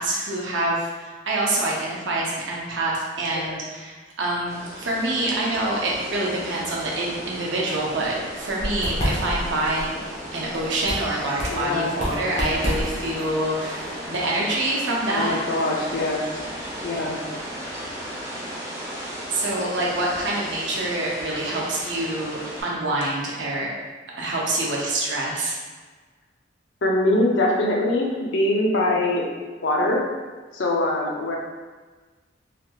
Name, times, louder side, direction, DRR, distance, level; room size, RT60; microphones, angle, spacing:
voice 1, 0.0-10.0 10.3-13.8 14.1-15.4 19.3-23.7 24.2-25.5, right 2 dB, 75° right, -4 dB, 0.7 m, -26 dB
sound 1, 4.5-22.6, equal, 15° right, 0.7 m, -35 dB
sound 2, 8.0-14.7, equal, 40° left, 0.8 m, -31 dB
voice 2, 11.5-11.9 15.1-16.2 16.8-17.2 26.8-29.3 29.6-30.0 30.5-31.4, left 1 dB, 70° left, -1 dB, 0.5 m, -23 dB
3.3 x 2.7 x 2.3 m, 1.4 s
head